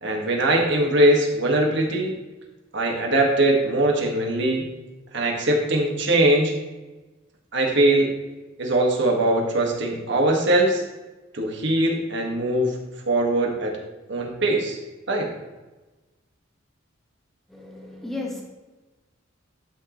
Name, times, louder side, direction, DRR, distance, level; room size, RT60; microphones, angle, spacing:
voice 1, 0.0-2.1 2.7-4.6 5.1-6.5 7.5-8.1 8.6-10.8 11.3-12.8 13.0-13.8 14.1-14.8 15.1-15.3, right 1 dB, 60° right, 0 dB, 1.8 m, -21 dB
voice 2, 17.5-18.4, left 2 dB, ahead, -2 dB, 1.7 m, -34 dB
11.5 x 6.4 x 3.2 m, 1.2 s
head